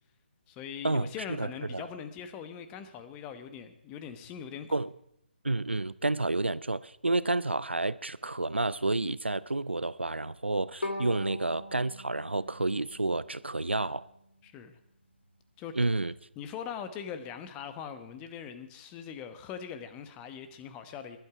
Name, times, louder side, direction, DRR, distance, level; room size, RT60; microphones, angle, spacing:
voice 1, 0.5-4.7 14.4-14.8 15.6-15.7 16.4-21.2, left 8 dB, 15° left, 1.1 m, -41 dB
voice 2, 1.4-1.9 4.7-4.9 5.4-14.0 15.8-16.1, right 2 dB, 85° right, 0.5 m, -30 dB
Bowed string instrument, 10.8-13.9, left 1 dB, 75° left, 3.3 m, -41 dB
20.5 x 11.5 x 4.8 m
figure-of-eight pair, 140°, 6 cm